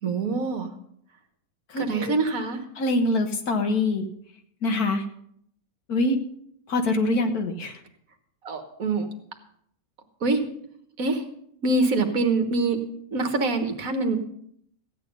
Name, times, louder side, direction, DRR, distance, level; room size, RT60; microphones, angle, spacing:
voice 1, 0.0-0.7 1.8-2.6 8.4-9.1 10.2-10.4 11.0-11.2 11.6-12.8 13.1-14.2, right 3 dB, 65° right, 6 dB, 1.8 m, -24 dB
voice 2, 1.7-2.0 2.8-4.1 4.6-5.0 5.9-6.2 6.7-7.8, left 2 dB, 75° left, 6 dB, 1.8 m, -24 dB
15.0 x 9.2 x 5.3 m, 0.68 s
omnidirectional pair, 1.6 m